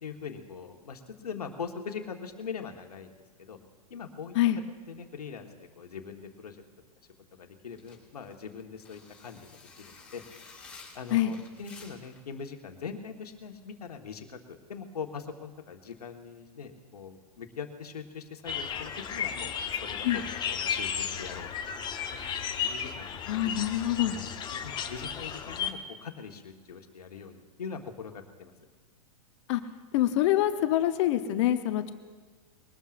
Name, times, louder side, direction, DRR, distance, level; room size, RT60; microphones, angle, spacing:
voice 1, 0.0-3.1 3.4-3.6 3.9-4.3 4.9-6.6 7.4-10.2 10.6-21.5 22.1-22.2 22.6-23.5 24.5-28.5, left 6 dB, 80° left, 5 dB, 1.5 m, -42 dB
sound 1, 7.7-12.2, left 4 dB, 5° left, 3.5 m, -51 dB
sound 2, 18.5-25.7, left 7 dB, 25° left, 1.1 m, -34 dB
voice 2, 23.3-24.2 29.5-29.6 29.9-31.9, left 13 dB, 50° left, 9 dB, 0.9 m, -25 dB
22.0 x 18.5 x 2.6 m, 1.4 s
hypercardioid pair, 110°, 19 cm